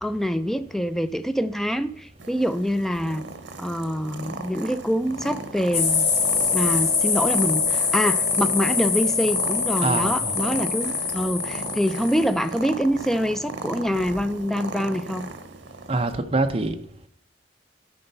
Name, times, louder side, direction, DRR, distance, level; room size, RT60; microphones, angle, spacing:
voice 1, 0.0-3.2 3.6-6.1 6.5-15.3, equal, ahead, 10 dB, 0.3 m, -25 dB
Purr, 2.2-16.1, right 3 dB, 80° right, 1.0 m, -37 dB
sound 1, 5.7-12.4, left 5 dB, 65° left, 1.7 m, -24 dB
voice 2, 9.8-10.4 15.9-16.8, right 2 dB, 30° right, 7 dB, 0.7 m, -24 dB
11.5 x 4.4 x 5.4 m, 0.70 s
head